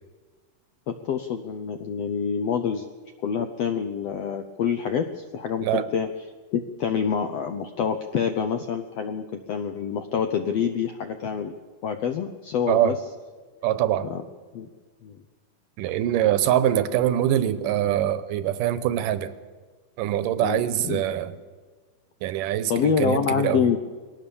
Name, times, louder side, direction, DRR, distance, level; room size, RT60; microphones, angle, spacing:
voice 1, 0.9-2.8 3.2-6.1 6.5-11.6 11.8-13.0 14.0-14.2 14.5-14.7 15.0-15.2 20.4-21.0 22.7-23.8, left 7 dB, 75° left, 7 dB, 1.5 m, -26 dB
voice 2, 13.6-14.1 15.8-19.3 20.0-21.4 22.2-23.7, right 11 dB, 80° right, 13 dB, 2.4 m, -23 dB
22.0 x 18.0 x 7.0 m, 1.4 s
omnidirectional pair, 3.8 m